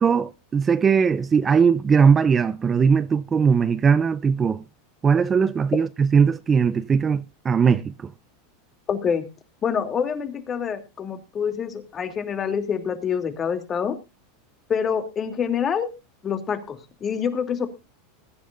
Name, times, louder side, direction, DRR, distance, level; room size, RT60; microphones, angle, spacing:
voice 1, 0.0-4.6 5.0-8.1, right 6 dB, 25° right, 0.6 m, -19 dB
voice 2, 8.9-9.3 9.6-14.0 14.7-15.9 16.2-17.7, left 7 dB, 30° left, 2.8 m, -26 dB
21.5 x 10.5 x 2.5 m
hypercardioid pair, 110°, 0 cm